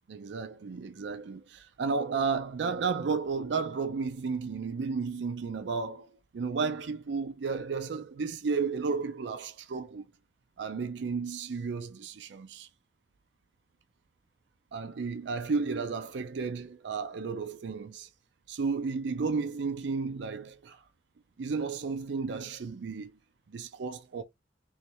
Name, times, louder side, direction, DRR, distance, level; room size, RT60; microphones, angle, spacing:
voice 1, 0.1-6.1 6.3-10.0 10.6-12.7 14.7-18.1 18.5-20.8 21.4-23.1 23.5-24.2, right 5 dB, 70° right, 0.4 m, -33 dB
3.2 x 3.1 x 4.4 m
head